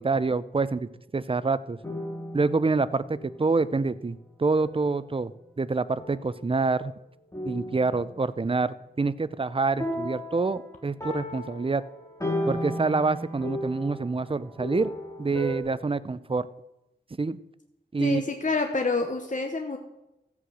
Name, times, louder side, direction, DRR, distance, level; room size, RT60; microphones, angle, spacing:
voice 1, 0.0-1.8 2.3-5.3 5.6-6.9 7.4-11.8 12.5-14.9 15.2-16.5 17.2-17.4 17.9-18.2, right 3 dB, 30° right, 16 dB, 0.5 m, -26 dB
sound 1, 1.8-3.6 4.5-4.9 6.0-6.8 7.3-8.6 9.8-15.6, left 1 dB, 15° left, 3.1 m, -35 dB
voice 2, 18.0-19.8, left 3 dB, 45° left, 4 dB, 1.0 m, -27 dB
14.5 x 7.9 x 6.3 m, 0.92 s
wide cardioid pair, 75°, 18 cm